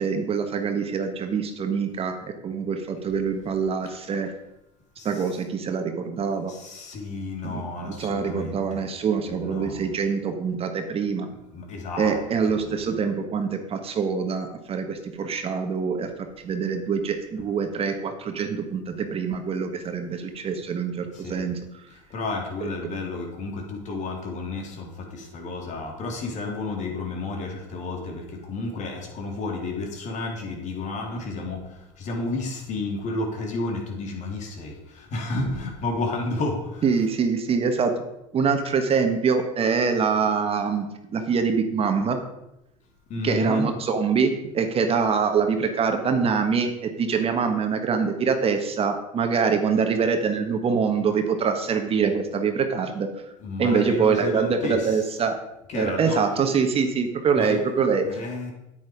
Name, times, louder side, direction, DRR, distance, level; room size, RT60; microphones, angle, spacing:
voice 1, 0.0-4.3 5.0-6.5 7.4-11.3 12.0-21.6 36.8-37.9 38.3-42.2 43.2-53.1 53.6-55.4 55.7-58.1, right 5 dB, 40° right, 6 dB, 1.5 m, -24 dB
voice 2, 5.0-5.3 6.5-8.9 9.4-9.8 11.5-12.2 12.4-12.8 19.9-20.1 21.1-21.5 21.9-36.9 43.1-43.7 53.4-55.1 55.7-56.2 57.3-57.6 58.0-58.5, left 2 dB, 50° left, 2 dB, 3.2 m, -31 dB
9.4 x 9.1 x 5.1 m, 0.88 s
supercardioid pair, 100°, 16 cm